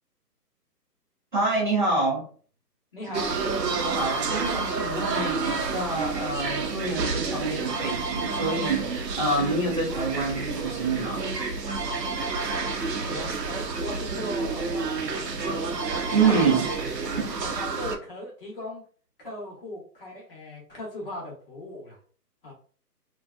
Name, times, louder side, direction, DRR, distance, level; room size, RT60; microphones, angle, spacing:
voice 1, 1.3-2.2 3.1-3.5 3.8-8.8 9.2-11.2 16.1-16.6, right 3 dB, 30° right, -5 dB, 0.7 m, -27 dB
voice 2, 2.9-3.4 13.1-15.6 16.1-16.6 17.4-18.8 19.2-22.0 22.4-22.5, left 1 dB, 35° left, -3 dB, 0.9 m, -38 dB
sound 1, 3.1-18.0, right 4 dB, 80° right, 0.8 m, -29 dB
2.6 x 2.3 x 2.3 m, 0.42 s
figure-of-eight pair, 150°, 49 cm